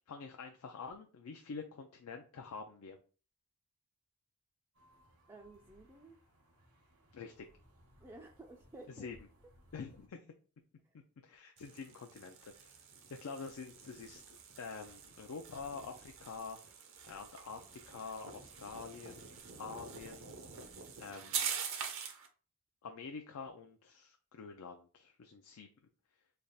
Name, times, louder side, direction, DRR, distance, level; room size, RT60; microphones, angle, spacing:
voice 1, 0.1-3.0 7.1-7.5 8.9-9.2 9.7-10.2 11.2-12.7 13.1-16.6 17.0-19.3 19.6-20.3 21.0-21.5 22.8-25.7, left 5 dB, 75° left, 4 dB, 0.4 m, -47 dB
sound 1, 4.7-10.1, equal, 85° right, 1.2 m, -65 dB
voice 2, 5.3-6.2 8.0-9.1 10.8-11.0, right 2 dB, 15° right, 0 dB, 0.3 m, -54 dB
sound 2, 11.6-22.3, right 7 dB, 65° right, 0.6 m, -45 dB
3.3 x 2.4 x 4.0 m, 0.38 s
head